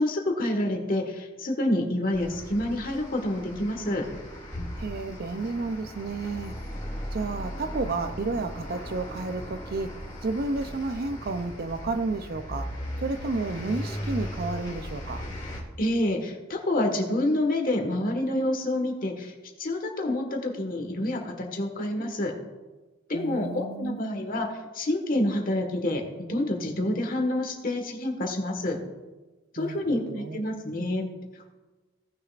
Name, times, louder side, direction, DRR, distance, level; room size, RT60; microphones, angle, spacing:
voice 1, 0.0-4.1 15.8-19.3 19.6-22.3 23.1-24.5 24.7-26.0 26.3-28.8 29.5-31.1, left 1 dB, 45° left, 1.5 m, -27 dB
sound 1, 2.1-15.6, equal, 20° left, 2.6 m, -37 dB
voice 2, 4.8-6.5 7.1-9.9 10.2-12.7 13.0-15.3 23.1-24.0 29.6-30.4, right 3 dB, 50° right, 0.5 m, -31 dB
17.5 x 6.6 x 2.5 m
head